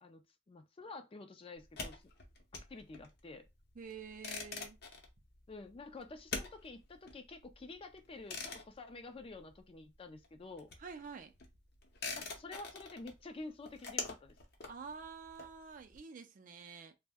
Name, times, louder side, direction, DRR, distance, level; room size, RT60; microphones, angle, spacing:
voice 1, 0.0-2.0 2.5-3.5 5.5-10.7 12.2-14.4, left 3 dB, 30° left, 0.4 m, -49 dB
sound 1, 1.6-9.9 10.2-16.0, left 4 dB, 60° left, 0.7 m, -46 dB
voice 2, 3.8-4.8 10.8-11.3 14.7-16.9, right 5 dB, 45° right, 0.4 m, -48 dB
2.6 x 2.1 x 3.4 m
head